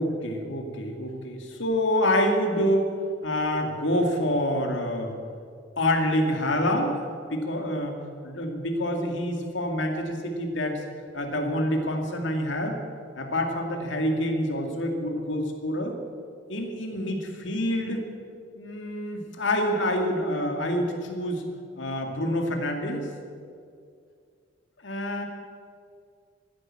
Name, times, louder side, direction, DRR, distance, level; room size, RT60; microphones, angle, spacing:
voice 1, 0.0-2.9 3.2-5.2 5.8-7.0 7.3-10.8 11.1-12.8 13.2-16.0 16.5-18.0 18.5-21.4 21.8-23.1 24.8-25.2, left 1 dB, 70° left, 4 dB, 2.2 m, -27 dB
14.0 x 11.0 x 8.7 m, 2.3 s
head